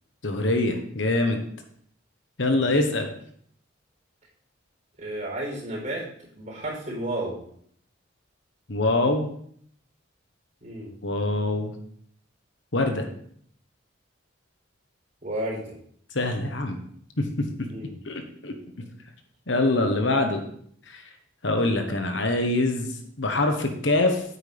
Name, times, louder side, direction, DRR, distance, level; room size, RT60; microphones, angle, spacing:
voice 1, 0.2-1.4 2.4-3.1 8.7-9.3 11.0-11.7 12.7-13.1 16.1-16.8 17.2-17.3 18.0-18.5 19.5-20.4 20.9-21.0 21.4-22.9 23.2-24.2, left 2 dB, 70° left, 5 dB, 1.2 m, -24 dB
voice 2, 5.0-6.0 6.4-7.4 10.6-10.9 15.2-15.7 17.7-18.0, right 1 dB, 40° right, -3 dB, 4.1 m, -32 dB
9.1 x 8.6 x 3.5 m, 0.64 s
head